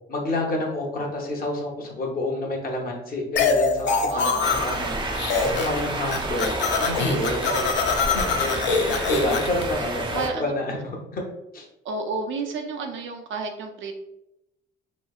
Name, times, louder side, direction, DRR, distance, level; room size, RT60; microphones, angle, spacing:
voice 1, 0.1-5.0 5.4-7.6 8.1-8.4 8.9-11.2 11.5-11.7, left 2 dB, 50° left, 0 dB, 0.9 m, -29 dB
sound 1, 3.4-4.9 5.1-5.8 6.1-9.6, left 4 dB, 65° left, 0.5 m, -24 dB
voice 2, 4.1-4.9 6.1-6.3 7.5-7.9 8.5-8.8 10.1-10.5 11.8-14.0, right 3 dB, 75° right, 3 dB, 0.6 m, -32 dB
sound 2, 4.4-10.3, right 2 dB, 25° right, 0.6 m, -30 dB
3.1 x 2.8 x 2.3 m, 0.89 s
cardioid pair, 90°, 20 cm